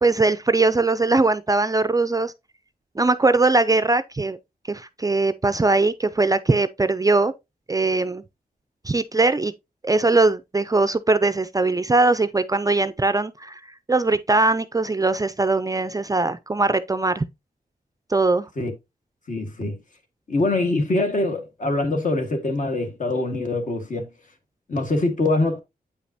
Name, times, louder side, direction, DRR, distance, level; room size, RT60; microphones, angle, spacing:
voice 1, 0.0-2.3 3.0-4.4 4.7-7.3 7.7-8.2 8.8-9.5 9.8-13.6 13.9-17.3 18.1-18.5, right 3 dB, 20° right, 0.4 m, -20 dB
voice 2, 19.3-19.8 20.3-24.1 24.7-25.6, left 2 dB, 55° left, 1.6 m, -24 dB
8.6 x 5.2 x 2.7 m
wide cardioid pair, 150°, 16 cm